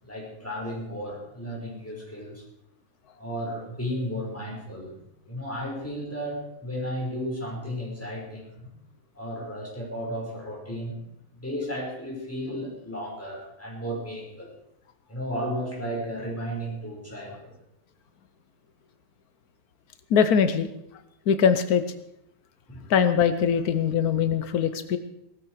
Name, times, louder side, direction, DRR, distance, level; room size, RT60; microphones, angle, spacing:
voice 1, 0.0-2.4 3.2-4.9 5.3-8.7 9.1-11.0 11.3-14.5 15.1-17.5 22.7-22.8, equal, 10° left, -3 dB, 5.3 m, -34 dB
voice 2, 20.1-20.7 21.3-21.8 22.9-25.0, left 7 dB, 85° left, 10 dB, 1.4 m, -22 dB
18.5 x 14.0 x 4.8 m, 0.79 s
omnidirectional pair, 1.5 m